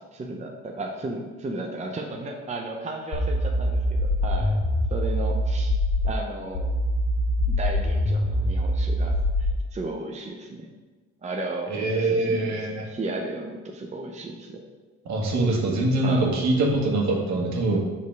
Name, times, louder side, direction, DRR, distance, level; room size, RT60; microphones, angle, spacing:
voice 1, 0.1-4.6 4.9-5.8 6.0-6.7 7.5-10.7 11.2-14.6 16.0-16.3, right 2 dB, 20° right, 1 dB, 0.8 m, -34 dB
sound 1, 3.1-6.1 6.5-9.6, left 1 dB, 50° left, 1.9 m, -24 dB
voice 2, 11.7-12.9 15.0-17.8, right 2 dB, 60° right, -1 dB, 1.7 m, -23 dB
5.1 x 4.2 x 5.9 m, 1.3 s
supercardioid pair, 80°, 31 cm